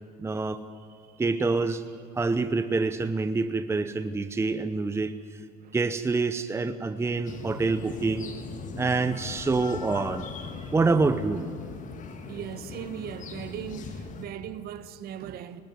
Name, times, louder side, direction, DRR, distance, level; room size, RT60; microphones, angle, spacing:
voice 1, 0.2-0.6 1.2-1.8 2.1-5.1 5.7-8.3 8.8-10.3 10.7-11.5, right 3 dB, 15° right, 0.8 m, -26 dB
voice 2, 0.7-1.4 5.6-5.8 10.5-10.8 12.3-15.6, right 10 dB, 55° right, 1.2 m, -39 dB
sound 1, 7.3-14.3, left 5 dB, 40° left, 2.0 m, -39 dB
20.0 x 14.0 x 9.5 m
supercardioid pair, 90°, 19 cm